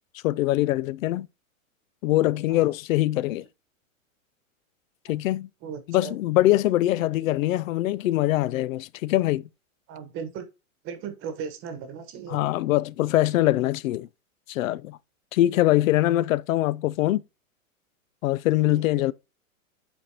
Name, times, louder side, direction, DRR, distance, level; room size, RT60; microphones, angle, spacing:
voice 1, 0.2-1.3 2.0-3.5 5.1-5.5 5.9-9.5 12.3-14.1 14.5-15.0 15.3-17.2 18.2-19.1, left 15 dB, 70° left, 0.5 m, -23 dB
voice 2, 5.6-6.2 7.0-7.1 9.9-10.4 10.8-12.4 18.7-19.1, right 7 dB, 30° right, 1.1 m, -37 dB
8.3 x 4.4 x 2.8 m
hypercardioid pair, 140°, 42 cm